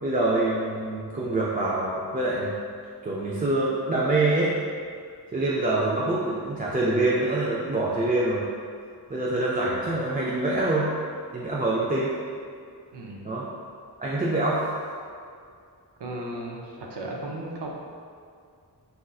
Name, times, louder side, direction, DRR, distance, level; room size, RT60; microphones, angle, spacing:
voice 1, 0.0-2.6 3.0-4.6 5.3-8.5 9.1-10.9 11.3-12.1 13.2-13.5 14.0-14.6, right 2 dB, 25° right, -7 dB, 0.3 m, -25 dB
voice 2, 12.9-13.3 16.0-17.7, right 1 dB, 85° right, -1 dB, 0.6 m, -35 dB
4.1 x 2.5 x 2.3 m, 2.2 s
wide cardioid pair, 70°, 40 cm